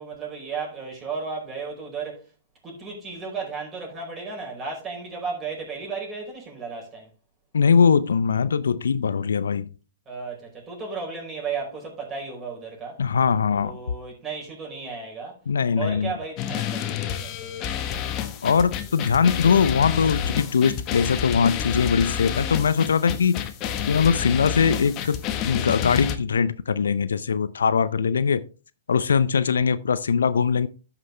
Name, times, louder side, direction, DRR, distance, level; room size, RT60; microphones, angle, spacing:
voice 1, 0.0-2.3 2.6-7.1 10.0-13.0 13.5-15.4 15.8-17.8, right 4 dB, 20° right, 5.0 m, -34 dB
voice 2, 7.5-9.7 13.0-13.8 15.5-16.1 18.4-23.4 23.9-28.4 28.9-30.7, left 6 dB, 80° left, 0.5 m, -21 dB
sound 1, 16.4-26.2, left 9 dB, 35° left, 1.1 m, -29 dB
12.5 x 6.0 x 3.2 m
hypercardioid pair, 120°, 0 cm